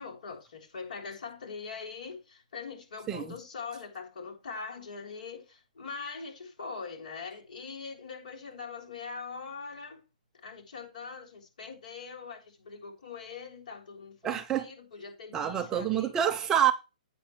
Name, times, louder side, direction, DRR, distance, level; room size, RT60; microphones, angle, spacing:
voice 1, 0.0-10.0 10.4-16.1, left 5 dB, 65° left, 3.6 m, -42 dB
voice 2, 14.2-14.7 15.3-16.7, right 10 dB, 10° right, 0.5 m, -27 dB
8.3 x 6.9 x 4.5 m
hypercardioid pair, 165°, 4 cm